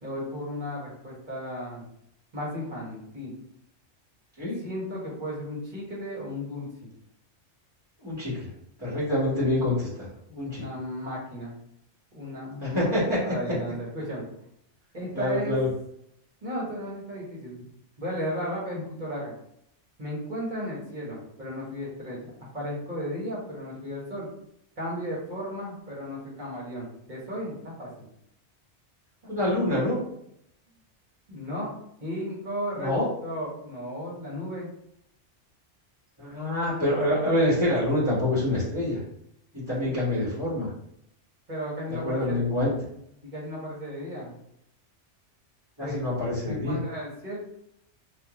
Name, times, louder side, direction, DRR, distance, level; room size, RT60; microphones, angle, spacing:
voice 1, 0.0-1.9 2.3-3.3 4.6-6.9 10.6-11.5 12.1-14.3 14.9-15.5 16.4-17.7 18.0-19.3 20.0-24.3 24.8-28.1 29.4-29.5 31.3-31.7 32.0-32.9 33.2-34.7 36.9-37.1 39.8-40.0 41.5-42.4 43.2-44.4 45.8-46.0 46.4-47.4, equal, 40° right, -5 dB, 1.6 m, -35 dB
voice 2, 8.0-8.5 8.8-10.6 12.6-13.2 15.1-15.7 29.3-30.0 32.8-33.0 36.2-39.0 39.5-40.7 41.9-42.7 45.8-46.8, left 1 dB, 20° right, -11 dB, 1.5 m, -26 dB
3.7 x 2.9 x 3.1 m, 0.74 s
omnidirectional pair, 1.2 m